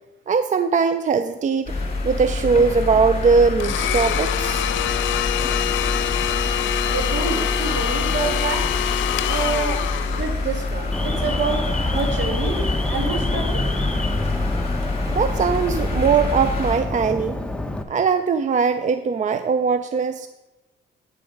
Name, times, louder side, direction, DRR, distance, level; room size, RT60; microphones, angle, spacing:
voice 1, 0.3-1.7 2.0-4.7 15.1-17.4 17.9-20.3, right 5 dB, 40° right, 11 dB, 0.5 m, -20 dB
sound 1, 1.7-16.8, left 2 dB, 30° left, 3.3 m, -26 dB
Domestic sounds home sounds, 3.6-10.7, left 10 dB, 75° left, 0.7 m, -25 dB
voice 2, 6.9-8.6 9.3-9.8 10.1-12.6 12.9-13.6, right 4 dB, 65° right, 3 dB, 2.2 m, -27 dB
Alarm, 10.9-17.8, left 1 dB, 5° left, 0.9 m, -27 dB
9.1 x 6.9 x 5.1 m, 1.1 s
cardioid pair, 90°, 20 cm